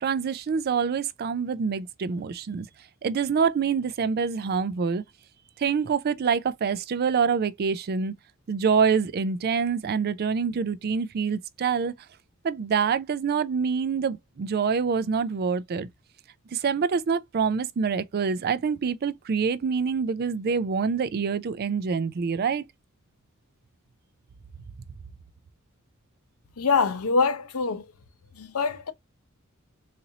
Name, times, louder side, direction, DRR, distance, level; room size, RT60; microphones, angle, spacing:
voice 1, 0.0-2.7 3.0-5.0 5.6-8.1 8.5-11.9 12.4-15.9 16.5-22.7, right 6 dB, 45° right, 0.4 m, -26 dB
voice 2, 26.6-27.9 28.4-28.9, left 4 dB, 85° left, 0.7 m, -24 dB
4.1 x 2.6 x 2.7 m
head